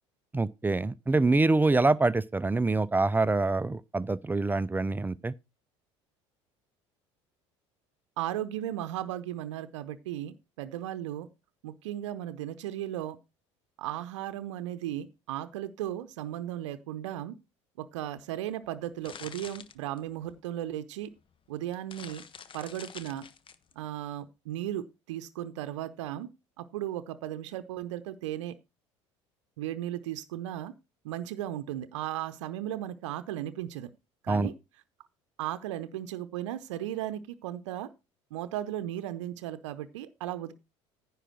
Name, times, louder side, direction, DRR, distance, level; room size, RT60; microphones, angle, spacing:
voice 1, 0.3-5.3 34.3-34.5, right 3 dB, 10° right, 0.5 m, -25 dB
voice 2, 8.2-11.3 11.6-13.2 13.8-17.4 17.8-21.1 21.5-22.2 22.5-23.3 23.8-26.3 26.6-28.5 29.6-30.7 31.0-33.9 34.2-34.5 35.4-37.9 38.3-40.5, right 12 dB, 70° right, 0.7 m, -36 dB
sound 1, 18.7-20.4 21.2-21.3 21.6-23.7, left 7 dB, 35° left, 0.9 m, -47 dB
10.0 x 4.8 x 6.2 m
hypercardioid pair, 65°, 16 cm